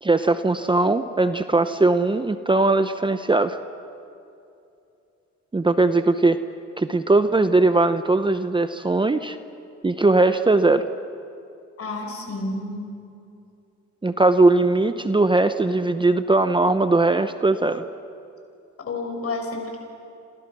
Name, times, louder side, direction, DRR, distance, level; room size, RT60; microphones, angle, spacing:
voice 1, 0.0-3.6 5.5-6.4 6.8-9.4 9.8-10.8 14.0-17.8, right 2 dB, 15° right, 10 dB, 0.8 m, -19 dB
voice 2, 11.8-13.0 18.9-19.8, left 2 dB, 50° left, 3 dB, 6.1 m, -30 dB
29.0 x 26.5 x 6.2 m, 2.6 s
cardioid pair, 90°, 30 cm